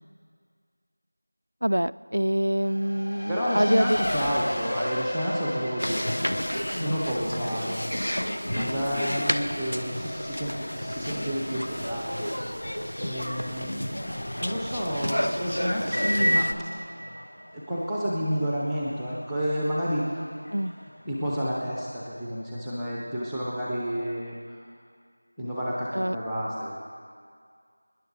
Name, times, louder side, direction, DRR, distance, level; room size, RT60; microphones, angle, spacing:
voice 1, 1.6-4.0 20.5-20.7 25.9-26.2, equal, 80° right, 16 dB, 0.4 m, -25 dB
Race car auto racing, 2.6-21.7, left 1 dB, 50° left, 2.8 m, -38 dB
voice 2, 3.3-7.8 8.5-12.4 13.0-16.9 17.5-20.2 21.0-24.6 25.4-26.8, equal, ahead, -6 dB, 0.6 m, -30 dB
sound 1, 5.8-16.5, equal, 75° left, 1.1 m, -30 dB
24.5 x 10.5 x 4.0 m, 2.1 s
figure-of-eight pair, 180°, 0 cm